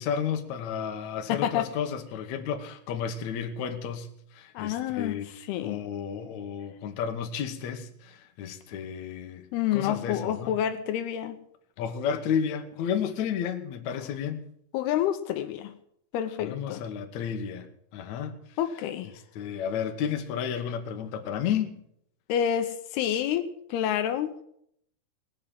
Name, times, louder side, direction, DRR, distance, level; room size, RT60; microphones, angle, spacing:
voice 1, 0.0-4.1 4.4-5.3 5.6-9.4 9.7-10.5 11.8-14.4 16.4-17.7 17.9-18.3 19.4-21.8, left 8 dB, 65° left, 2.0 m, -32 dB
voice 2, 1.3-1.7 4.6-5.8 9.5-11.4 14.7-15.7 16.1-16.8 18.6-19.1 22.3-24.3, left 10 dB, 80° left, 2.7 m, -28 dB
19.0 x 7.6 x 7.5 m
omnidirectional pair, 4.7 m